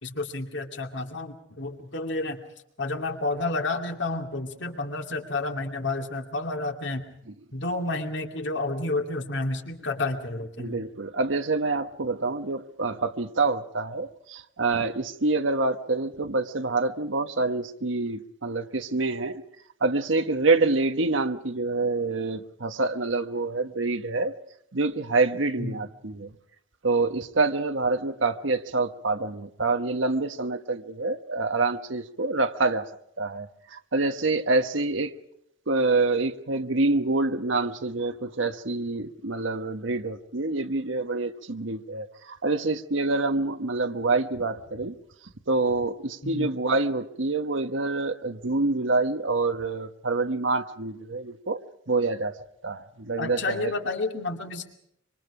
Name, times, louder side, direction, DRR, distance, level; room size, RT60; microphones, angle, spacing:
voice 1, 0.0-2.4 2.8-7.0 7.5-10.8 25.6-25.8 46.2-46.5 53.2-54.7, left 2 dB, 70° left, 2.6 m, -30 dB
voice 2, 10.6-19.4 19.8-24.3 24.7-26.3 26.8-32.9 33.2-35.1 35.7-44.9 45.5-51.6 51.9-52.3 52.6-53.7, right 3 dB, 85° right, 1.2 m, -26 dB
26.0 x 24.5 x 4.9 m
head